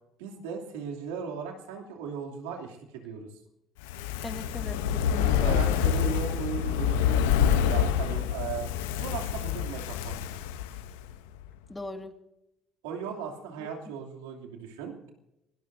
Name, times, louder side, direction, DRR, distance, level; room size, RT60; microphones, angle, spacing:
voice 1, 0.2-3.3 5.2-8.7 9.0-10.2 12.8-15.1, right 6 dB, 90° right, 1 dB, 2.8 m, -37 dB
Fire, 3.8-11.1 11.4-11.5, left 8 dB, 90° left, 0.8 m, -27 dB
voice 2, 4.2-5.8 11.7-12.1 13.6-13.7, left 2 dB, 15° left, 6 dB, 2.0 m, -39 dB
23.5 x 18.0 x 2.7 m, 0.87 s
supercardioid pair, 75°, 0 cm